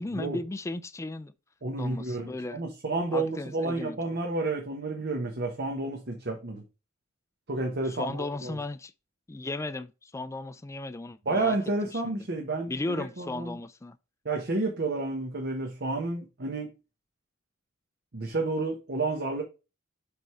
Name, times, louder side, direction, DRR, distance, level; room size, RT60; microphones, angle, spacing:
voice 1, 0.0-1.3 1.8-2.6 3.1-4.0 7.8-8.9 9.3-11.6 11.9-12.3 12.7-14.0, left 2 dB, 15° left, 0.4 m, -35 dB
voice 2, 1.6-6.6 7.5-8.6 11.2-13.6 14.2-16.7 18.1-19.4, right 2 dB, 55° right, 1.1 m, -30 dB
5.1 x 4.6 x 4.8 m
head